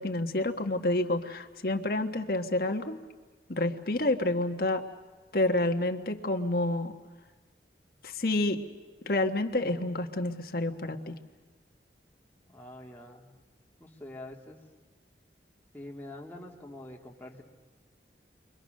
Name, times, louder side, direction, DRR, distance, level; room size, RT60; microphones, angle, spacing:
voice 1, 0.0-3.0 3.5-4.8 5.3-7.0 8.0-8.6 9.0-11.1, left 2 dB, 55° left, 5 dB, 1.4 m, -29 dB
voice 2, 12.5-13.3 13.8-14.6 15.7-17.4, left 1 dB, 10° left, -1 dB, 2.2 m, -45 dB
29.5 x 23.5 x 6.5 m, 1.4 s
head